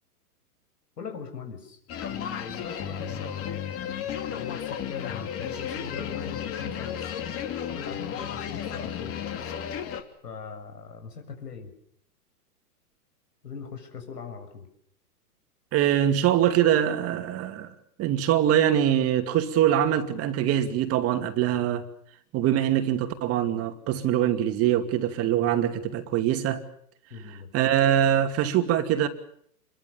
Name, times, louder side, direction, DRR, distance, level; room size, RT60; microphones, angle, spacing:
voice 1, 1.0-7.2 7.7-9.2 10.2-11.7 13.4-14.7 27.1-27.5, left 5 dB, 90° left, 7.4 m, -41 dB
sound 1, 1.9-10.0, left 8 dB, 30° left, 3.1 m, -33 dB
voice 2, 15.7-17.7 18.0-21.9 22.3-26.6 27.5-29.1, right 11 dB, 30° right, 2.5 m, -23 dB
28.0 x 23.0 x 7.1 m
hypercardioid pair, 130°, 47 cm